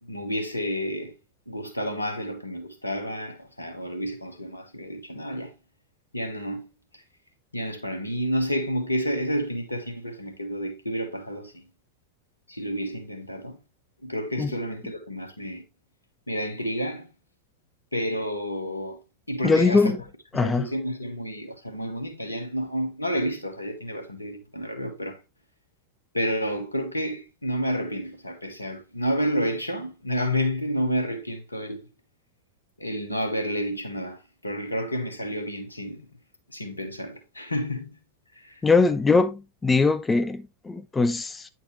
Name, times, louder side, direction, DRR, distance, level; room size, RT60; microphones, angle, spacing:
voice 1, 0.0-1.1 1.5-5.5 6.1-6.7 6.9-7.0 7.5-11.6 12.5-13.6 14.0-15.6 16.3-17.1 17.9-19.0 19.3-20.0 20.3-25.2 26.1-31.9 32.8-36.1 36.5-37.9 38.3-38.6, equal, 85° left, 1.4 m, -30 dB
voice 2, 19.4-20.0 20.3-20.7 38.6-41.5, left 4 dB, 15° left, 0.5 m, -21 dB
9.5 x 4.4 x 3.1 m
figure-of-eight pair, 90°, 0 cm